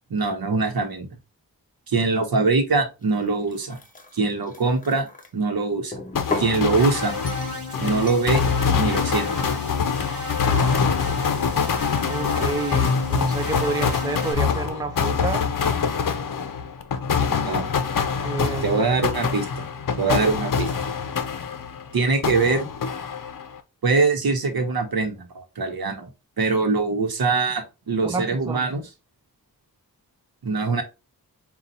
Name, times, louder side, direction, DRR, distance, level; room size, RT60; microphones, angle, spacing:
voice 1, 0.1-1.1 1.9-3.8 4.1-5.1 5.3-6.0 6.4-7.2 7.8-8.4 8.7-9.5 17.3-17.7 18.6-19.6 20.0-20.7 21.9-22.7 23.8-26.1 26.4-28.8 30.4-30.8, right 3 dB, 75° right, 1.0 m, -23 dB
sound 1, 3.0-5.3 5.9-6.6 7.3-7.6 8.1-8.3, left 3 dB, 20° left, 0.7 m, -34 dB
sound 2, 6.2-21.9 22.2-23.6, left 6 dB, 60° left, 0.6 m, -25 dB
sound 3, 6.7-14.3, left 2 dB, 40° right, 1.3 m, -35 dB
voice 2, 12.1-15.5 18.2-18.9 20.1-20.4 28.0-28.7, right 3 dB, 10° right, 0.4 m, -29 dB
5.2 x 2.4 x 2.7 m
wide cardioid pair, 90°, 37 cm